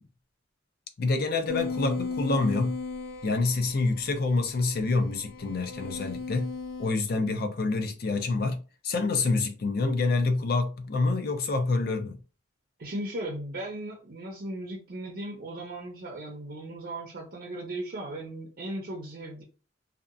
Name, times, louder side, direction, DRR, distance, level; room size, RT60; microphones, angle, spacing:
voice 1, 1.0-2.7 3.2-6.5 6.8-8.6 8.8-12.2, left 3 dB, 50° left, 0.4 m, -27 dB
sound 1, 1.5-6.9, left 4 dB, 90° left, 0.7 m, -36 dB
voice 2, 12.8-19.4, right 1 dB, 50° right, 0.5 m, -37 dB
2.7 x 2.2 x 2.4 m
head